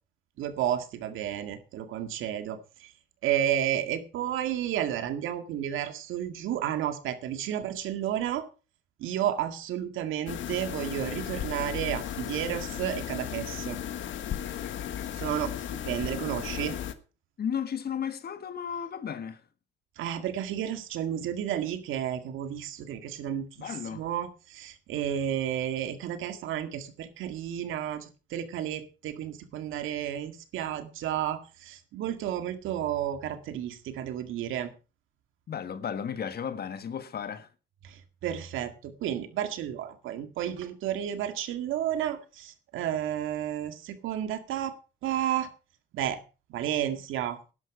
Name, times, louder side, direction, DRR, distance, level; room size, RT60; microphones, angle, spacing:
voice 1, 0.4-2.9 3.2-8.5 9.0-13.8 15.2-16.8 20.0-34.7 37.8-44.7 45.0-45.5 45.9-46.2 46.5-47.4, right 10 dB, 85° right, 2.0 m, -32 dB
sound 1, 10.3-16.9, left 10 dB, 75° left, 1.4 m, -35 dB
voice 2, 17.4-19.4 23.6-24.1 35.5-37.5, left 8 dB, 50° left, 1.5 m, -34 dB
12.0 x 11.5 x 4.8 m
cardioid pair, 90°, 20 cm